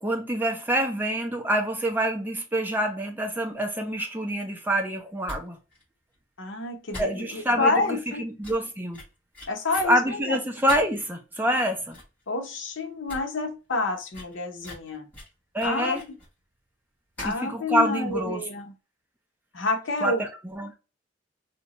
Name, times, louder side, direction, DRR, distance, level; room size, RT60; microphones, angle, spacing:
voice 1, 0.0-5.6 7.0-9.0 9.8-12.0 15.5-16.0 17.2-18.4 20.0-20.8, right 1 dB, 10° right, 0.5 m, -26 dB
sound 1, 5.2-5.4 5.7-5.8 6.1-6.2 6.9-7.5 7.9-8.0 8.4-9.9 10.7-11.1 11.5-11.6 11.9-12.2 12.5-12.6 12.9-13.2 13.5-13.6 14.1-16.3 17.2-17.5 17.7-17.8, left 1 dB, 10° left, 1.2 m, -41 dB
voice 2, 6.4-8.2 9.5-10.0 10.3-10.4 12.3-15.1 15.6-16.0 17.2-18.7 19.5-20.2, left 3 dB, 75° left, 0.8 m, -28 dB
2.8 x 2.2 x 4.0 m
head